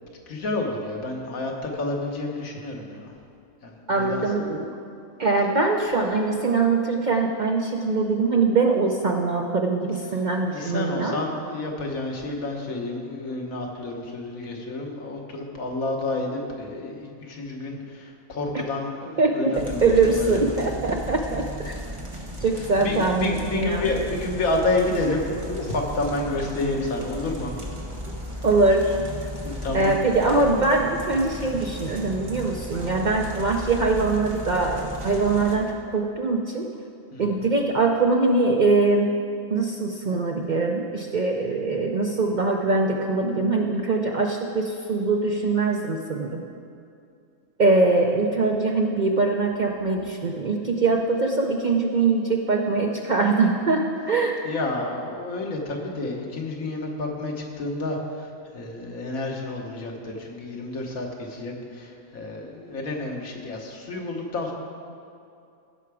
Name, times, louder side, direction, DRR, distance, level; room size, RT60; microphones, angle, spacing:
voice 1, 0.3-3.1 3.6-4.2 10.1-10.2 10.5-20.4 22.5-27.6 29.4-29.9 30.8-30.9 37.1-37.4 54.4-64.5, left 2 dB, 85° left, 1 dB, 1.7 m, -30 dB
voice 2, 3.9-4.8 5.2-11.2 19.2-21.7 22.4-23.9 28.4-29.0 29.7-36.7 37.2-39.2 39.5-46.4 47.6-54.3, right 3 dB, 55° right, 2 dB, 0.5 m, -22 dB
sound 1, 19.5-35.6, equal, 25° right, 1.3 m, -35 dB
16.0 x 5.8 x 4.8 m, 2.5 s
omnidirectional pair, 1.4 m